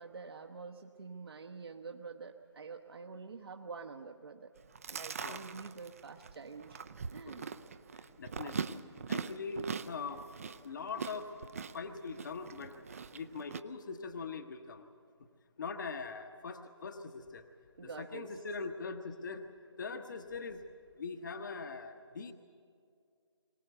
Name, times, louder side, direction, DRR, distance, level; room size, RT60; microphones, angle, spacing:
voice 1, 0.0-4.5 4.9-6.8 7.1-7.4 17.8-18.3, right 4 dB, 60° right, 2 dB, 1.1 m, -47 dB
Chewing mastication, 4.6-13.6, right 6 dB, 30° right, 0.6 m, -42 dB
voice 2, 7.9-8.7 9.1-10.2 10.6-11.3 11.7-12.7 13.1-14.9 15.6-17.4 17.8-19.4 19.8-20.6 21.0-22.3, left 4 dB, 45° left, 7 dB, 1.0 m, -42 dB
23.0 x 19.0 x 8.0 m, 2.3 s
figure-of-eight pair, 160°, 15 cm